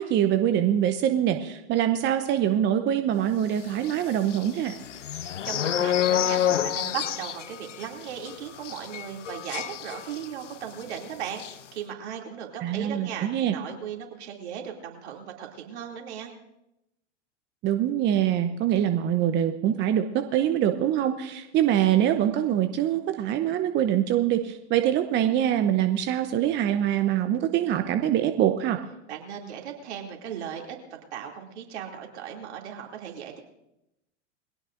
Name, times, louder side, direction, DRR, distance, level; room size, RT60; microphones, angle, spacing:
voice 1, 0.0-4.8 12.6-13.5 17.6-28.8, right 11 dB, 30° right, 8 dB, 0.8 m, -24 dB
sound 1, 3.8-10.5 10.8-11.0 11.3-11.6, left 10 dB, 85° left, 0.7 m, -29 dB
voice 2, 5.1-16.3 29.1-30.8 31.1-33.4, right 8 dB, 65° right, 1 dB, 2.8 m, -37 dB
21.5 x 16.5 x 2.6 m, 0.88 s
hypercardioid pair, 100°, 35 cm